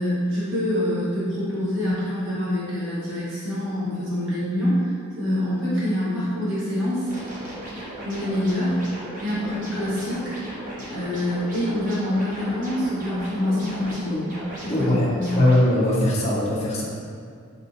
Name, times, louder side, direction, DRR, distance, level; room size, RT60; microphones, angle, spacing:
voice 1, 0.0-7.1 8.0-8.8 9.2-10.4 10.9-14.2 14.6-15.3, left 1 dB, 60° right, -11 dB, 1.4 m, -26 dB
sound 1, 7.1-15.6, equal, 35° right, 0.8 m, -36 dB
voice 2, 14.7-15.1 15.4-16.8, left 1 dB, 30° left, -6 dB, 0.6 m, -20 dB
3.8 x 3.7 x 2.7 m, 2.2 s
head